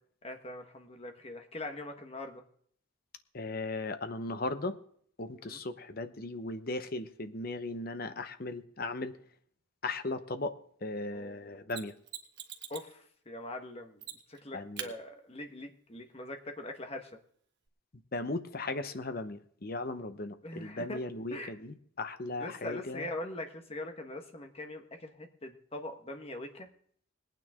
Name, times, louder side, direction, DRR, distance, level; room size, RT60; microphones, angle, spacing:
voice 1, 0.2-2.4 5.4-5.6 11.1-11.6 12.7-14.0 14.3-17.1 20.4-21.0 21.3-21.5 22.4-26.7, left 1 dB, 30° left, 4 dB, 1.3 m, -42 dB
voice 2, 3.3-4.8 5.2-9.2 9.8-11.9 14.5-14.9 18.1-23.1, left 2 dB, 45° left, 10 dB, 0.9 m, -37 dB
Mechanisms, 11.7-12.9 14.0-14.4 14.8-14.9 17.7-17.8, right 9 dB, 55° right, 1.2 m, -43 dB
20.5 x 9.2 x 3.7 m, 0.62 s
head